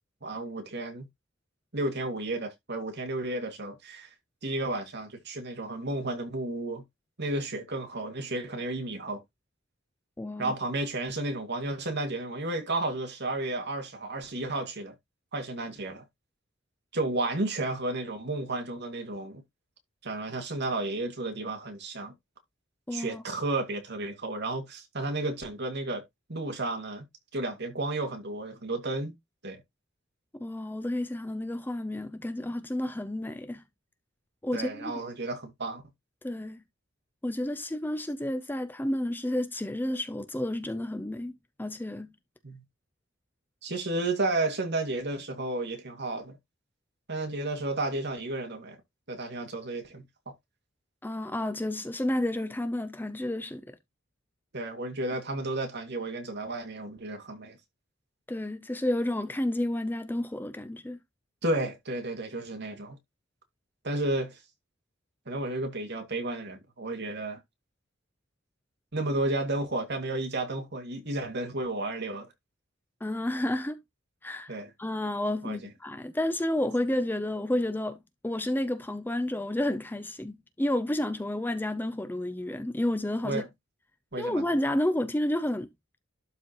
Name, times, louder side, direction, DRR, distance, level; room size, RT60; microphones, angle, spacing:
voice 1, 0.2-1.1 1.7-4.1 4.4-6.8 7.2-9.2 10.4-14.9 15.3-16.0 16.9-19.4 20.0-22.1 22.9-26.0 26.3-27.0 27.3-29.1 29.4-29.6 34.5-35.8 42.4-42.6 43.6-46.4 47.1-48.8 49.1-50.0 54.5-57.6 61.4-63.0 63.8-64.4 65.3-67.4 68.9-72.3 74.5-74.7 75.4-75.7 83.2-83.5 84.1-84.5, right 2 dB, 55° right, 2.2 m, -32 dB
voice 2, 10.2-10.5 22.9-23.2 30.4-33.6 34.4-34.9 36.2-36.6 37.2-41.3 41.6-42.1 51.0-53.6 58.3-61.0 73.0-73.8 74.2-83.4 84.2-85.7, left 1 dB, 10° left, 0.5 m, -31 dB
12.0 x 4.3 x 3.0 m
head